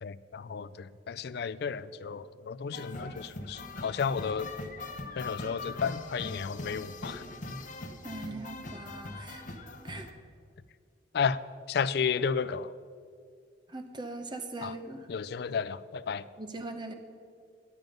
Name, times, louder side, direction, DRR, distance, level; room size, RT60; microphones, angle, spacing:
voice 1, 0.0-4.5 5.2-7.2 11.1-11.4 11.7-12.7 14.6-14.7 15.1-16.2, left 6 dB, 55° left, 0.3 m, -32 dB
sound 1, 2.7-10.1, left 2 dB, 40° left, 0.9 m, -41 dB
voice 2, 8.0-9.6 9.8-10.1 13.7-15.1 16.4-16.9, right 2 dB, 25° right, 0.7 m, -41 dB
10.5 x 9.4 x 5.2 m
head